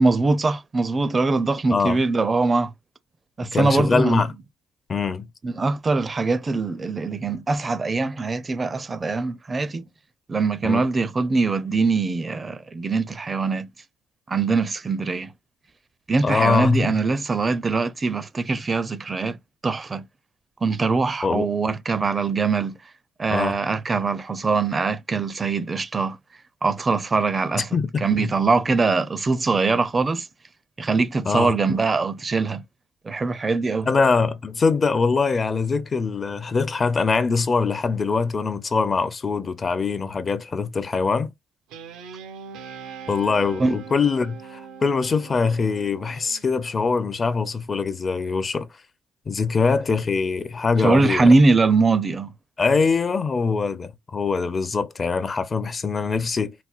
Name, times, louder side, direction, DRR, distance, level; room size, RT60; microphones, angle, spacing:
voice 1, 0.0-2.7 3.4-4.2 5.4-9.9 10.3-13.7 14.3-15.3 16.1-19.4 19.6-20.0 20.6-22.7 23.2-26.2 26.6-27.7 28.0-30.3 30.8-32.6 33.0-33.9 43.6-43.8 50.8-52.3, right 3 dB, 30° right, 0.4 m, -22 dB
voice 2, 1.7-2.0 3.5-4.3 4.9-5.3 10.6-10.8 16.2-16.9 21.2-21.5 23.3-23.6 27.5-28.3 31.3-31.6 33.9-41.3 43.1-48.7 49.3-51.3 52.6-56.5, left 4 dB, 35° left, 0.5 m, -23 dB
Guitar, 41.7-46.4, right 6 dB, 85° right, 0.6 m, -41 dB
4.1 x 2.1 x 2.4 m
cardioid pair, 95°, 0 cm